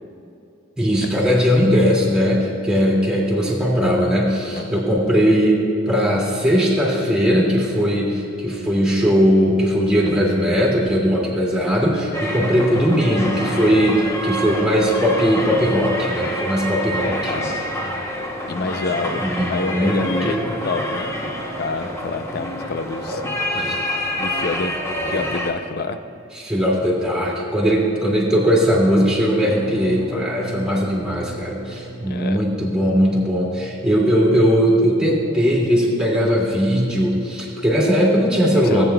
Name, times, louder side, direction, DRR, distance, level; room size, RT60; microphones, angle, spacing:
voice 1, 0.8-17.3 19.2-20.4 23.1-23.2 23.5-24.0 24.9-25.2 26.3-38.8, equal, 5° right, -5 dB, 2.3 m, -19 dB
sound 1, 12.1-25.5, equal, 15° left, 0.8 m, -27 dB
voice 2, 18.5-19.2 19.5-21.1 21.6-23.2 24.2-24.7 25.1-26.0 32.0-32.4 38.5-38.8, left 3 dB, 45° left, 9 dB, 0.5 m, -27 dB
sound 2, 28.8-34.7 35.0-35.5 35.8-36.2, right 3 dB, 30° right, 0.5 m, -39 dB
17.5 x 8.9 x 2.3 m, 2.8 s
head